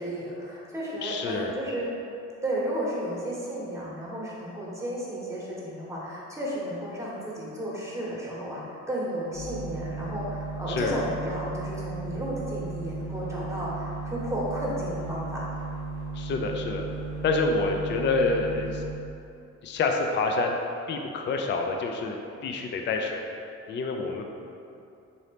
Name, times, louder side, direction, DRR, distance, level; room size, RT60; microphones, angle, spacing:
voice 1, 0.0-1.9 2.4-15.4, equal, 10° right, -6 dB, 1.0 m, -33 dB
voice 2, 1.0-1.5 10.7-11.0 16.2-16.8 17.2-18.8 19.6-20.6 20.9-22.2 22.4-23.2 23.7-24.2, left 3 dB, 40° left, 3 dB, 0.4 m, -27 dB
sound 1, 9.3-18.9, right 4 dB, 75° left, 0.7 m, -35 dB
3.9 x 2.8 x 3.3 m, 2.6 s
cardioid pair, 90°, 30 cm